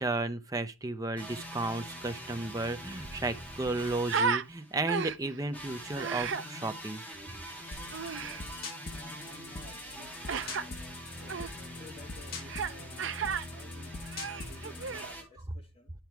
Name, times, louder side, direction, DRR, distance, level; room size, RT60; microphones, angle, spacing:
voice 1, 0.0-7.0, right 2 dB, 15° right, 0.6 m, -33 dB
sound 1, 1.2-4.9 5.5-15.2, equal, 5° left, 2.7 m, -44 dB
Human voice, 2.5-2.6 2.8-4.5 4.9-5.4 6.0-6.4 7.9-8.4 10.3-10.6 11.3-11.5 12.5-12.7 13.0-13.5 14.0-15.1, right 6 dB, 60° right, 0.6 m, -33 dB
sound 2, 7.7-15.1, left 3 dB, 45° left, 1.3 m, -44 dB
voice 2, 7.8-8.6 8.9-15.9, left 1 dB, 30° left, 3.6 m, -55 dB
10.5 x 4.6 x 4.6 m
head